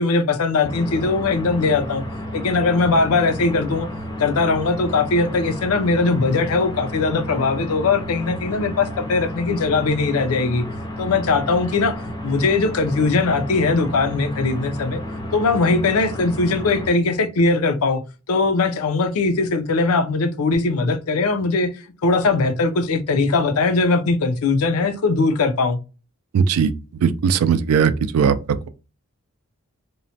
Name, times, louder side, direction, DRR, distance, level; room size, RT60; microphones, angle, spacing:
voice 1, 0.0-2.0 2.3-3.9 4.2-10.6 11.0-11.9 12.2-15.0 15.3-18.0 18.3-21.7 22.0-25.8, left 3 dB, 85° left, 0.5 m, -20 dB
sound 1, 0.6-16.9, equal, 20° left, 0.4 m, -32 dB
voice 2, 26.3-26.7 27.0-28.4, right 6 dB, 85° right, 0.3 m, -18 dB
2.9 x 2.1 x 2.7 m
head